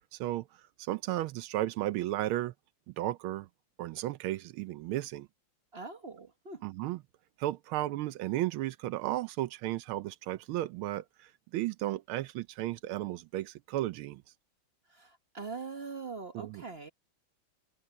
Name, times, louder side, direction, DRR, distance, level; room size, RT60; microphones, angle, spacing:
voice 1, 0.1-2.5 3.0-3.5 3.8-5.3 6.6-7.0 7.4-14.2 16.3-16.6, right 15 dB, 85° right, 1.5 m, -34 dB
voice 2, 5.7-6.6 14.9-16.9, right 4 dB, 35° right, 1.2 m, -42 dB
omnidirectional pair, 2.3 m